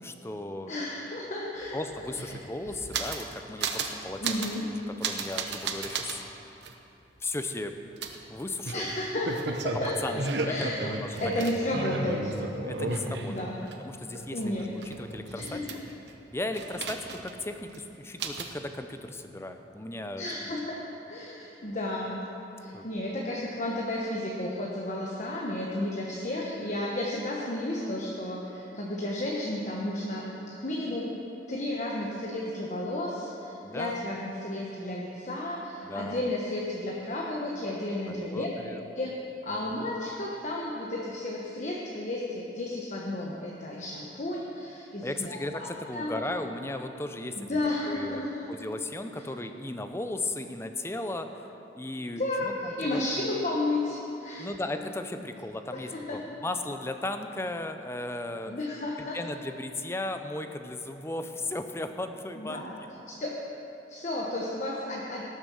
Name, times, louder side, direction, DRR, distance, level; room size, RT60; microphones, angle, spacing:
voice 1, 0.0-0.7 1.7-4.4 5.0-6.2 7.2-7.7 8.3-8.9 10.0-11.9 12.7-13.4 13.8-15.6 16.3-20.6 22.7-22.9 33.6-34.1 35.8-36.2 38.1-38.8 39.5-39.9 45.0-48.2 48.5-53.3 54.4-58.5 59.0-62.6, left 2 dB, 15° left, 7 dB, 0.6 m, -36 dB
voice 2, 0.7-1.8 2.1-2.3 4.2-4.7 8.7-10.9 11.2-12.3 13.3-13.6 14.3-14.7 15.3-15.8 20.2-22.3 22.6-31.2 31.5-38.5 38.9-45.7 45.9-46.2 47.3-48.5 52.2-54.5 55.7-56.2 58.5-59.2 62.4-62.7 63.2-63.4 63.9-65.2, left 1 dB, 40° left, -3 dB, 1.2 m, -33 dB
sound 1, 1.6-1.7 1.9-3.3 3.6-3.9 4.2-4.6 5.0-6.2 6.6-6.7 8.0-13.7 14.1-16.1 16.5-17.4 17.7-17.8 18.2-18.5, right 3 dB, 70° right, 1.0 m, -33 dB
17.5 x 7.4 x 6.4 m, 2.9 s
head